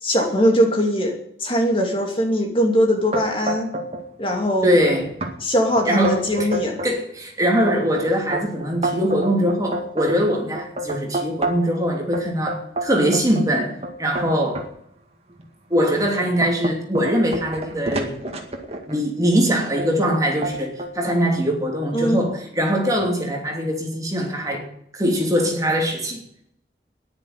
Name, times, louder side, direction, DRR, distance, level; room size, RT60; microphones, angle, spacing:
voice 1, 0.0-3.7 4.2-4.7 5.4-6.8 21.9-22.3, equal, 30° left, 2.5 m, -21 dB
sound 1, 3.1-4.0 4.3-4.8 5.2-5.3 5.8-6.9 7.4-11.7 12.1-14.7 15.3-15.4 15.9-19.0 19.8-20.1 20.4-21.2, right 1 dB, 35° right, 2.0 m, -28 dB
voice 2, 4.6-5.1 5.9-6.5 6.8-14.6 15.7-18.2 18.9-24.7 24.9-26.2, equal, 20° right, 2.9 m, -22 dB
10.5 x 10.5 x 9.5 m
head